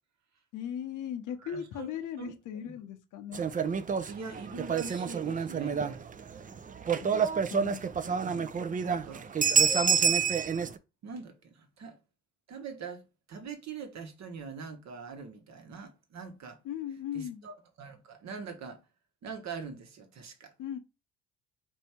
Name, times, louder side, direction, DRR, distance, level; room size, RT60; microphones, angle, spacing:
voice 1, 0.5-3.4 7.0-7.2 7.5-7.8 16.6-17.4 20.6-20.8, left 9 dB, 65° left, 0.8 m, -38 dB
voice 2, 1.4-1.9 2.2-2.8 4.1-6.0 8.0-8.6 8.8-9.3 11.0-12.0 12.5-13.0 13.3-16.6 17.1-18.8 19.2-20.5, right 5 dB, 55° right, 1.1 m, -43 dB
sound 1, 3.3-10.8, right 6 dB, 25° right, 0.4 m, -28 dB
3.4 x 2.7 x 4.3 m
supercardioid pair, 65°, 33 cm